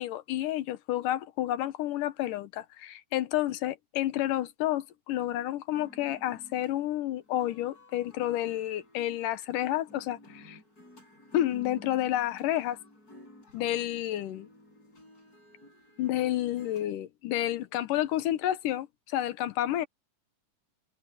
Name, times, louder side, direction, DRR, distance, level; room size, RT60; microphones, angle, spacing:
voice 1, 0.0-10.6 11.3-12.8 13.5-14.5 16.0-19.9, left 13 dB, 80° left, 2.6 m, -30 dB
sound 1, 5.7-16.9, left 1 dB, 25° left, 6.7 m, -53 dB
omnidirectional pair, 3.8 m